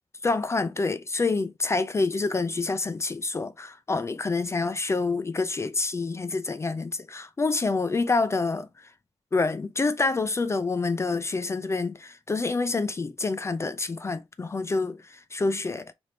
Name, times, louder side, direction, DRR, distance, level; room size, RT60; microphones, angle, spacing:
voice 1, 0.2-8.7 9.3-15.9, left 3 dB, 25° left, 0.3 m, -27 dB
3.3 x 2.6 x 4.2 m
wide cardioid pair, 135°, 11 cm